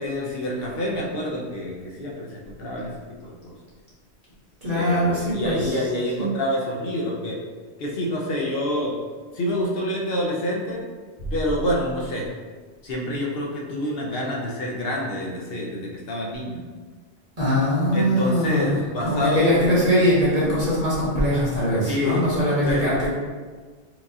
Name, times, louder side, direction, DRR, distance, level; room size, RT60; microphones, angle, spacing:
voice 1, 0.0-2.9 3.2-3.5 4.7-7.4 7.8-8.9 9.3-10.8 11.3-12.3 12.8-16.6 17.9-19.7 21.8-22.9, left 1 dB, 65° left, -2 dB, 0.9 m, -27 dB
voice 2, 4.6-5.8 6.2-6.3 17.4-18.7 19.0-23.1, equal, 35° right, -9 dB, 1.1 m, -21 dB
4.6 x 2.4 x 2.7 m, 1.4 s
omnidirectional pair, 1.1 m